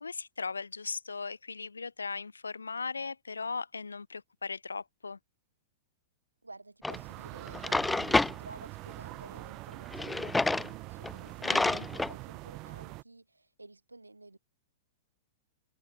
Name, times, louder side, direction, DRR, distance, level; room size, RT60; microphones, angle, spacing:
voice 1, 0.0-5.2 11.4-11.9, left 4 dB, 75° left, 1.7 m, -38 dB
voice 2, 6.4-14.4, right 2 dB, 80° right, 5.6 m, -52 dB
Drawer open or close, 6.8-7.0 7.5-8.3 9.9-10.7 11.0-11.1 11.4-12.1, left 2 dB, 5° left, 0.4 m, -28 dB
sound 1, 6.9-13.0, right 23 dB, 35° right, 0.7 m, -44 dB
figure-of-eight pair, 100°, 0 cm